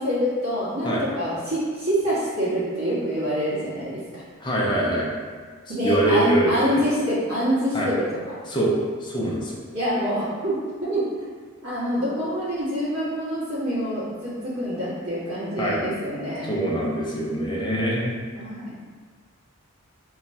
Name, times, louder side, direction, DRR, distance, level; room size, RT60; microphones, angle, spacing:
voice 1, 0.0-4.2 5.7-8.2 9.7-11.0 11.6-16.6 18.4-18.8, equal, 85° right, -9 dB, 1.5 m, -26 dB
voice 2, 4.4-5.1 5.8-6.8 7.7-7.9 8.5-9.6 15.6-15.8 16.4-18.2, right 1 dB, 20° left, -5 dB, 0.5 m, -24 dB
3.1 x 2.2 x 4.0 m, 1.5 s
head